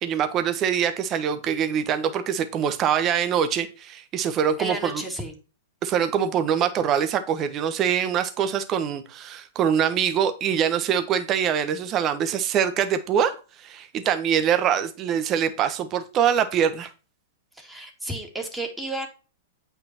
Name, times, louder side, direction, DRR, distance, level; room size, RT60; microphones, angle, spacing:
voice 1, 0.0-5.0 5.8-16.9, right 8 dB, 35° right, 1.3 m, -24 dB
voice 2, 4.6-5.4 17.5-19.1, right 2 dB, 5° right, 2.4 m, -32 dB
8.7 x 5.4 x 4.4 m
hypercardioid pair, 115°, 0 cm